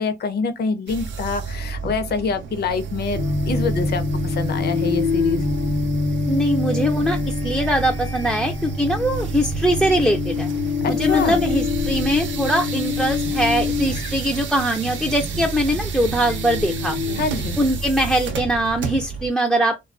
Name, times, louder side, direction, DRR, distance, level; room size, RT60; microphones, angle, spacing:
voice 1, 0.0-3.2 3.5-5.4 11.0-11.4 17.2-17.6, left 4 dB, 55° left, 0.7 m, -25 dB
sound 1, 0.9-19.3, right 4 dB, 70° right, 0.5 m, -30 dB
sound 2, 3.1-18.3, left 4 dB, 85° left, 0.9 m, -26 dB
voice 2, 6.3-10.5 10.9-17.0 17.6-19.8, equal, ahead, 0.4 m, -22 dB
2.3 x 2.3 x 2.4 m
cardioid pair, 90°, 20 cm